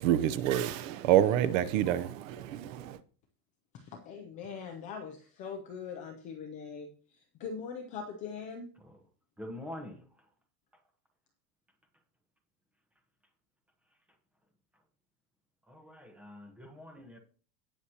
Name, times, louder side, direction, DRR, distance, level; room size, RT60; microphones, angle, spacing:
voice 1, 0.0-3.0, right 11 dB, 55° right, 0.8 m, -27 dB
voice 2, 3.7-8.7, left 6 dB, 20° left, 0.4 m, -42 dB
voice 3, 9.4-10.3 10.7-10.8 13.9-14.0 14.7-14.8 15.6-17.2, left 1 dB, 5° right, 0.9 m, -46 dB
17.5 x 6.3 x 2.9 m
supercardioid pair, 175°, 47 cm